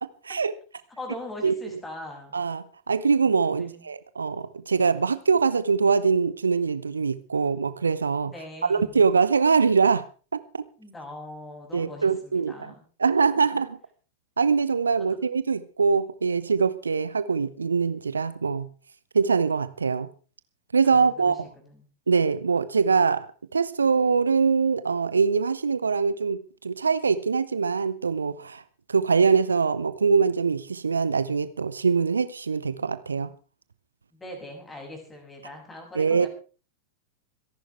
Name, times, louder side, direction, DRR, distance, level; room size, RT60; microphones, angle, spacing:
voice 1, 0.0-0.5 1.4-1.8 2.3-8.3 8.7-10.0 10.3-10.6 11.7-12.7 13.0-13.8 14.4-18.7 19.1-20.1 20.7-21.4 22.1-23.3 23.5-28.6 28.9-33.3 36.0-36.3, right 5 dB, 75° right, 15 dB, 0.8 m, -23 dB
voice 2, 1.0-2.3 3.5-3.8 8.3-9.0 10.8-12.8 13.4-13.5 15.0-15.2 20.8-21.8 34.1-36.3, left 1 dB, 15° left, 3 dB, 6.9 m, -41 dB
26.0 x 11.5 x 3.4 m, 0.37 s
figure-of-eight pair, 90°, 0 cm